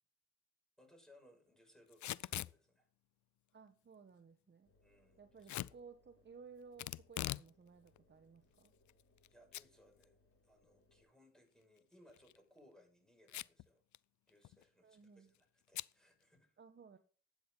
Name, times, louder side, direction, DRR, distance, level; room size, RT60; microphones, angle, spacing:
voice 1, 0.8-2.9 4.8-5.8 9.3-10.2 10.4-13.8 14.3-16.6, left 1 dB, ahead, 2 dB, 6.2 m, -67 dB
Packing tape duct tape / Tearing, 1.9-2.5 5.5-5.7 6.8-7.5 7.9-8.0 8.6-9.3 9.5-9.6 10.0-10.1 12.1-12.4 13.3-13.6 13.9-14.0 14.3-14.6 15.7-15.9, left 14 dB, 60° left, 0.5 m, -42 dB
voice 2, 3.5-4.7 5.2-8.7 14.8-15.3 16.6-17.0, right 5 dB, 35° right, 7 dB, 1.2 m, -58 dB
Engine, 4.6-11.0, left 2 dB, 45° left, 6.6 m, -74 dB
13.0 x 9.0 x 4.0 m, 0.41 s
cardioid pair, 75°, 33 cm